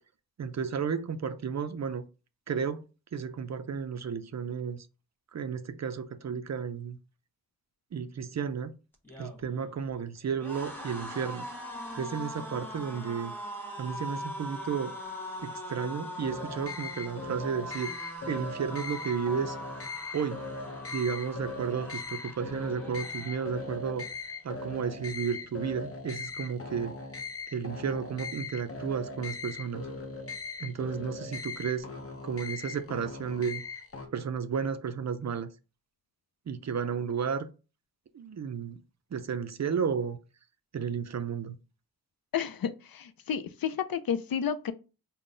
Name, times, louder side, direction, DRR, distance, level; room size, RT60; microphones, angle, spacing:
voice 1, 0.4-2.1 2.5-2.8 3.1-4.9 5.3-7.0 7.9-8.7 9.2-11.5 12.0-13.3 13.8-15.0 15.4-19.6 20.1-20.4 20.9-24.1 24.4-27.0 27.5-29.9 30.6-31.9 32.2-33.6 34.1-35.5 36.5-37.5 38.1-38.8 39.1-40.2 40.7-41.6, right 6 dB, 50° right, 0.4 m, -33 dB
sound 1, 8.9-24.1 24.5-24.7 25.0-25.8, equal, 5° left, 0.9 m, -42 dB
sound 2, 16.2-34.1, left 3 dB, 40° left, 0.7 m, -39 dB
voice 2, 42.3-44.7, left 8 dB, 70° left, 0.5 m, -31 dB
3.7 x 2.1 x 3.7 m
wide cardioid pair, 65°, 36 cm